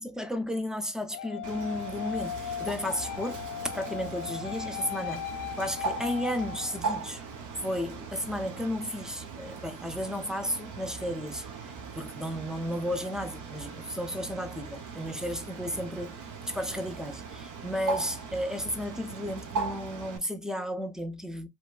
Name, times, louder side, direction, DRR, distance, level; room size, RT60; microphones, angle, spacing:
voice 1, 0.0-3.4 3.7-5.3 5.6-7.2 7.6-21.5, equal, ahead, 0.5 m, -33 dB
sound 1, 1.1-7.1, left 10 dB, 60° left, 0.6 m, -37 dB
Bird, 1.4-20.2, right 5 dB, 55° right, 0.9 m, -39 dB
3.0 x 2.2 x 2.3 m
hypercardioid pair, 50°, 37 cm